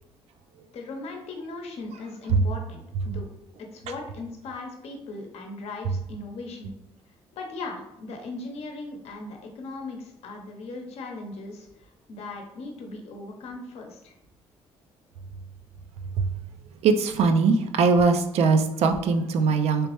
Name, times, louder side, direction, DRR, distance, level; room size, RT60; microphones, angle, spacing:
voice 1, 0.7-3.3 3.6-6.7 7.3-14.1, left 3 dB, 70° left, 2 dB, 0.7 m, -38 dB
voice 2, 16.8-19.9, right 4 dB, 70° right, 7 dB, 0.4 m, -21 dB
3.2 x 3.0 x 3.0 m, 0.83 s
cardioid pair, 85°, 11 cm